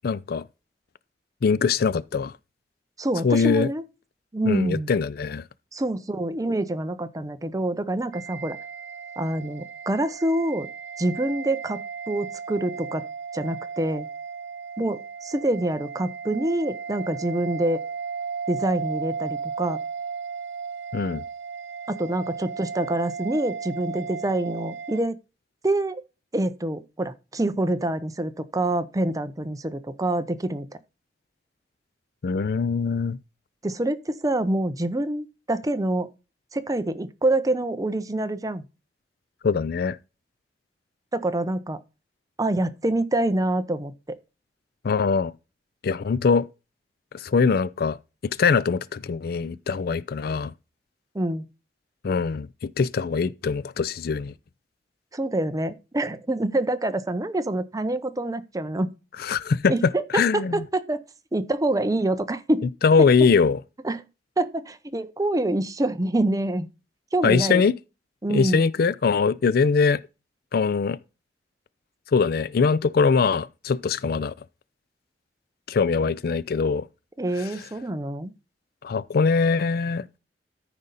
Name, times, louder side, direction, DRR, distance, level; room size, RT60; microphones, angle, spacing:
voice 1, 0.0-0.4 1.4-2.3 3.2-3.7 4.4-5.4 20.9-21.2 32.2-33.2 39.4-40.0 44.8-45.3 45.8-46.5 47.1-48.0 48.2-50.5 52.0-54.3 59.2-60.6 62.8-63.6 67.2-67.7 68.3-70.0 70.5-71.0 72.1-74.3 75.7-76.8 77.4-77.5 78.8-80.1, left 5 dB, 60° left, 0.4 m, -22 dB
voice 2, 3.0-3.8 4.3-4.9 5.7-8.6 9.2-10.7 11.0-13.1 13.3-14.1 14.8-17.8 18.5-19.8 21.9-25.2 25.6-26.0 26.3-30.7 33.6-36.1 36.5-38.6 41.1-41.8 42.4-44.2 51.1-51.4 55.1-58.9 59.7-61.0 61.3-62.6 63.8-64.0 64.4-66.7 67.1-67.6 68.2-68.7 77.2-78.3, right 1 dB, 20° right, 0.7 m, -26 dB
sound 1, 8.1-25.0, right 6 dB, 80° right, 1.3 m, -35 dB
13.5 x 5.2 x 4.1 m
head